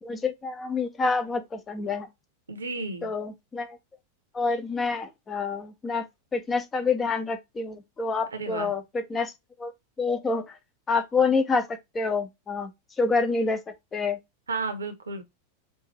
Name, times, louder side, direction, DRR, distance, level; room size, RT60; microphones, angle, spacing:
voice 1, 0.0-2.1 3.0-3.8 4.3-6.0 6.3-9.3 9.6-9.7 10.0-10.6 10.9-12.7 13.0-13.6 13.9-14.2, left 4 dB, 20° left, 0.8 m, -27 dB
voice 2, 2.5-3.1 8.3-8.7 14.5-15.2, right 3 dB, 75° right, 1.0 m, -32 dB
5.5 x 2.7 x 3.0 m
figure-of-eight pair, 90°, 0 cm